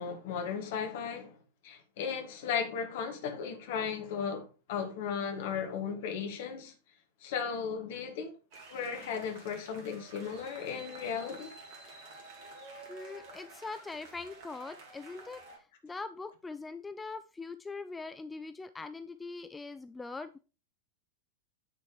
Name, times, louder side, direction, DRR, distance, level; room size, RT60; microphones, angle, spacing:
voice 1, 0.0-1.4 1.6-6.7 7.2-8.4 8.7-11.5, left 6 dB, 55° left, 1.9 m, -36 dB
sound 1, 8.5-15.6, right 3 dB, 45° right, 2.2 m, -51 dB
voice 2, 12.9-15.4 15.8-20.4, left 3 dB, 10° left, 0.4 m, -42 dB
9.3 x 4.3 x 4.7 m
figure-of-eight pair, 90°, 0 cm